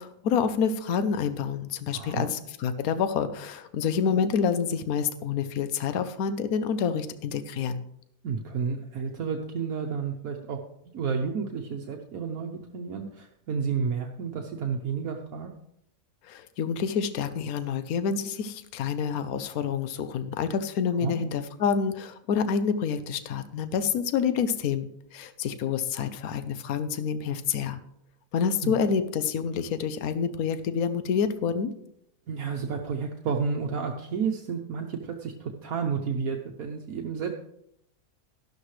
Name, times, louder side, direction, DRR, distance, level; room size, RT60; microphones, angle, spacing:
voice 1, 0.0-7.8 16.2-27.8 28.3-31.7, left 6 dB, 75° left, 12 dB, 1.2 m, -28 dB
voice 2, 1.9-2.3 8.2-10.6 10.9-15.5 21.0-21.2 28.6-28.7 32.3-37.3, right 5 dB, 70° right, 2 dB, 1.4 m, -31 dB
12.5 x 12.0 x 3.2 m, 0.73 s
omnidirectional pair, 1.6 m